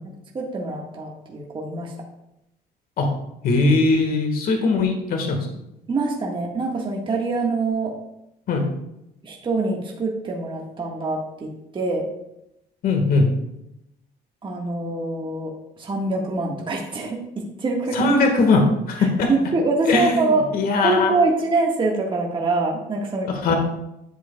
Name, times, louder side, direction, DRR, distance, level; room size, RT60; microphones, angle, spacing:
voice 1, 0.3-1.9 5.9-8.0 9.2-12.1 14.4-15.5 15.8-18.2 19.0-20.5 20.8-23.3, right 3 dB, 30° right, -1 dB, 1.6 m, -24 dB
voice 2, 3.4-5.4 8.5-8.6 12.8-13.3 17.9-19.3 19.9-21.1 23.3-23.5, left 3 dB, 60° left, 3 dB, 1.6 m, -20 dB
11.0 x 7.7 x 2.3 m, 0.86 s
cardioid pair, 110°, 17 cm